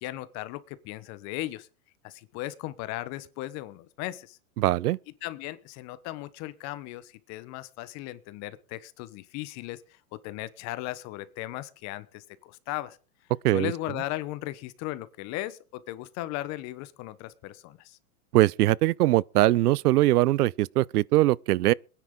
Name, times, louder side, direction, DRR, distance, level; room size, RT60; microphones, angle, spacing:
voice 1, 0.0-1.7 2.0-4.4 5.2-13.0 13.5-18.0, left 16 dB, 35° left, 1.0 m, -37 dB
voice 2, 4.6-5.0 13.4-13.7 18.3-21.7, right 16 dB, 90° right, 0.5 m, -22 dB
22.0 x 10.0 x 3.8 m
supercardioid pair, 135°, 45 cm